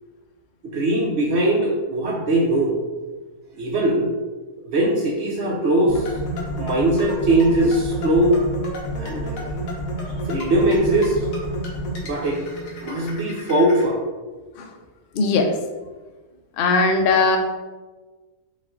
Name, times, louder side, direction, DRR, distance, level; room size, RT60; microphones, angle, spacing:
voice 1, 0.6-2.8 3.6-4.1 4.6-6.1 6.6-8.4 9.0-9.7 10.2-11.2 12.0-12.4 12.8-14.0, right 1 dB, 60° right, 0 dB, 0.7 m, -20 dB
sound 1, 5.8-13.8, equal, 60° left, 1.3 m, -30 dB
voice 2, 15.1-15.5 16.6-17.4, left 3 dB, 90° left, 3 dB, 0.4 m, -18 dB
5.2 x 2.5 x 3.7 m, 1.3 s
omnidirectional pair, 1.7 m